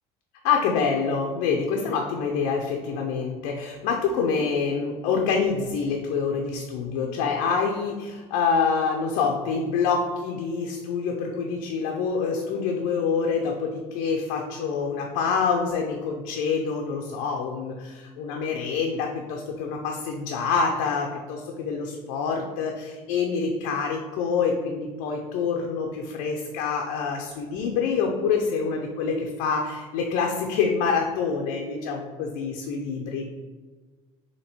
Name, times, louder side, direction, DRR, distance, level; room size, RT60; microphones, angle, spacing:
voice 1, 0.4-33.2, left 5 dB, 80° left, 1 dB, 0.6 m, -26 dB
4.2 x 2.9 x 4.3 m, 1.4 s
cardioid pair, 125°, 14 cm